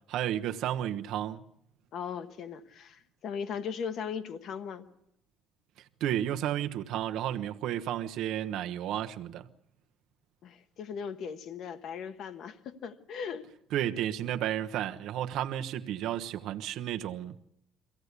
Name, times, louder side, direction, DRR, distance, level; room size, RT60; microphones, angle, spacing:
voice 1, 0.1-1.4 6.0-9.5 13.7-17.4, right 11 dB, 55° right, 1.1 m, -32 dB
voice 2, 1.9-4.9 10.4-13.5, left 6 dB, 45° left, 1.2 m, -38 dB
24.0 x 16.5 x 8.3 m
cardioid pair, 175°, 0 cm